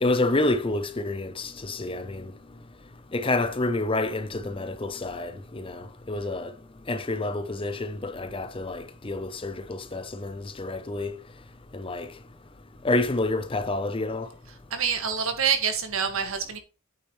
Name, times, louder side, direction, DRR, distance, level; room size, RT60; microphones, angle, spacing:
voice 1, 0.0-2.3 3.1-6.5 6.9-11.2 11.7-12.1 12.8-14.3, left 2 dB, 25° left, 0.7 m, -28 dB
voice 2, 14.7-16.6, right 7 dB, 70° right, 1.7 m, -26 dB
8.6 x 6.8 x 3.1 m
head